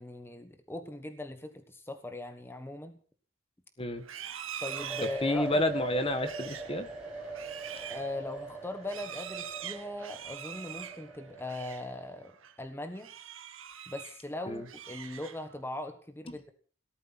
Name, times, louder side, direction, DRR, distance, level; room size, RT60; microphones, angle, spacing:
voice 1, 0.0-3.0 4.6-5.6 7.9-12.3 12.6-13.1 13.9-16.5, left 1 dB, 10° left, 7 dB, 1.3 m, -39 dB
Livestock farm animals working animals, 4.0-11.9 12.2-12.5 13.0-14.2 14.5-15.6, right 9 dB, 75° right, 1.8 m, -44 dB
sound 1, 4.6-12.3, right 3 dB, 5° right, 5.6 m, -42 dB
voice 2, 5.2-6.9 14.5-14.6 16.3-16.4, left 1 dB, 30° left, 10 dB, 1.6 m, -30 dB
18.0 x 13.0 x 6.1 m, 0.42 s
head